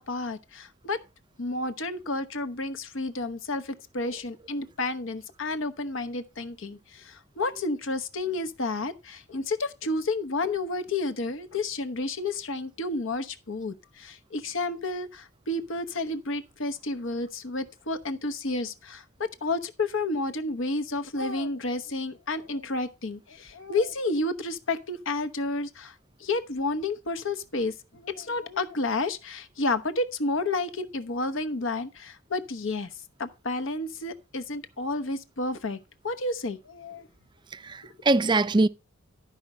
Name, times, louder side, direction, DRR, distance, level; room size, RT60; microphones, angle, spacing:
voice 1, 0.1-1.0 1.4-19.0 19.4-25.9 26.2-32.9 33.2-35.8 36.0-37.1, left 2 dB, 65° left, 1.0 m, -31 dB
voice 2, 37.5-38.7, right 2 dB, 20° right, 0.4 m, -24 dB
12.0 x 5.1 x 5.4 m
head